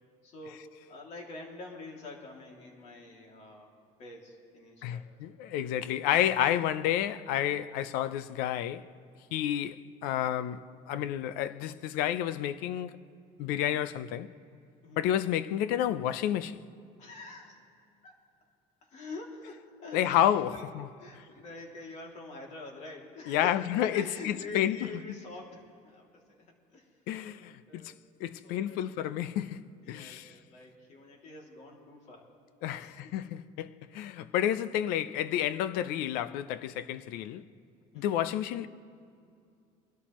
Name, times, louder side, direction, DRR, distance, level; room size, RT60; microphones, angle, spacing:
voice 1, 0.2-0.6 0.9-3.7 4.0-5.1 14.8-15.1 17.0-17.6 18.0-18.1 18.9-20.6 21.0-26.9 27.4-27.9 28.3-29.1 29.8-32.3 32.8-33.0 37.9-38.2, left 2 dB, 50° left, 2.6 m, -46 dB
voice 2, 4.8-8.9 9.3-13.0 13.4-14.3 15.0-16.6 19.9-20.9 23.3-24.9 27.1-27.9 28.2-30.3 32.6-37.4 37.9-38.7, left 11 dB, 85° left, 0.5 m, -30 dB
24.0 x 13.0 x 3.1 m
cardioid pair, 135°, 15 cm